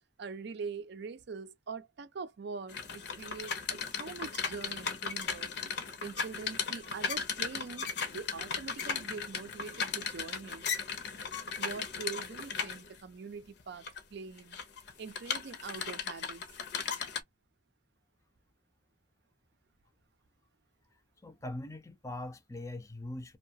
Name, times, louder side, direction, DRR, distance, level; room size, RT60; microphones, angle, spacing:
voice 1, 0.2-5.5 6.0-10.7 11.6-14.6 15.0-16.4, right 5 dB, 60° right, 0.4 m, -43 dB
sound 1, 2.7-13.0 13.6-14.0 14.4-17.2, left 6 dB, 60° left, 0.7 m, -36 dB
voice 2, 21.2-23.4, left 1 dB, 15° left, 0.5 m, -41 dB
2.7 x 2.1 x 2.7 m
head